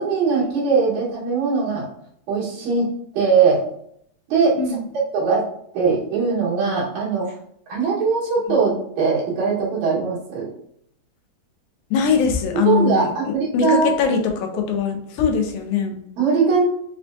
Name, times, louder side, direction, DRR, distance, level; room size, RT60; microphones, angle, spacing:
voice 1, 0.0-1.9 2.3-2.8 3.1-3.6 4.3-4.6 5.1-5.4 5.7-7.3 7.7-10.5 12.7-14.2 16.2-16.6, right 5 dB, 90° right, -6 dB, 2.8 m, -20 dB
voice 2, 11.9-16.0, left 6 dB, 90° left, 3 dB, 2.0 m, -22 dB
5.8 x 2.2 x 2.6 m, 0.69 s
omnidirectional pair, 3.3 m